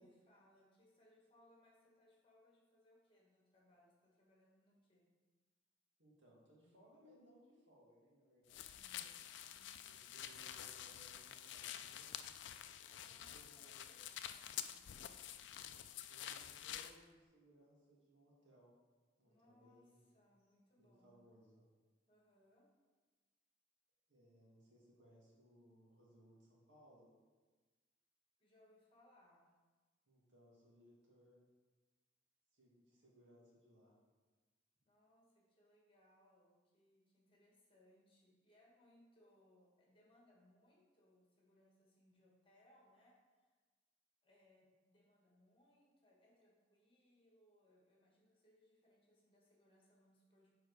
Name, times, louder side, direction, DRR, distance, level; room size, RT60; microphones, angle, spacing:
voice 1, 0.0-5.1 8.6-9.0 9.5-10.1 12.6-14.8 19.2-21.2 22.1-22.7 28.4-29.5 34.8-43.5 44.2-50.5, left 1 dB, 30° left, -3 dB, 1.6 m, -71 dB
voice 2, 6.0-9.0 9.9-12.2 13.0-14.1 15.8-18.7 19.2-20.0 20.8-21.6 24.1-27.1 30.1-31.4 32.5-34.0, equal, 80° right, -5 dB, 2.1 m, -67 dB
sound 1, 8.5-17.0, left 10 dB, 75° left, 0.4 m, -49 dB
7.0 x 4.6 x 4.8 m, 1.3 s
head